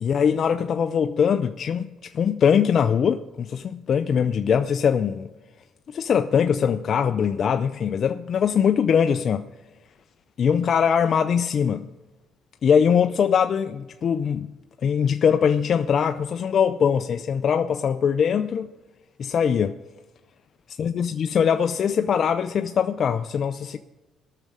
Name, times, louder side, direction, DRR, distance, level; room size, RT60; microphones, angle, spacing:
voice 1, 0.0-5.3 5.9-9.5 10.4-11.9 12.6-14.5 14.8-18.7 19.2-19.8 20.8-23.8, left 7 dB, 50° left, 0.4 m, -22 dB
18.5 x 6.5 x 4.9 m
cardioid pair, 105°, 0 cm